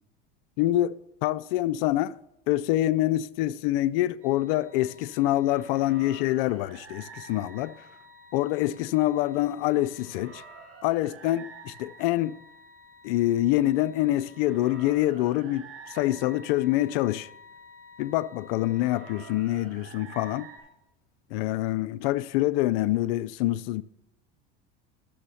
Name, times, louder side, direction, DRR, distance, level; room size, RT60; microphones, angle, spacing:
voice 1, 0.6-2.2 2.5-7.7 8.3-10.4 10.8-12.4 13.0-17.3 18.0-20.5 21.3-23.8, left 15 dB, 75° left, 0.5 m, -26 dB
sound 1, 4.2-20.6, right 2 dB, 45° right, 5.1 m, -49 dB
12.0 x 6.9 x 5.7 m
supercardioid pair, 95°, 30 cm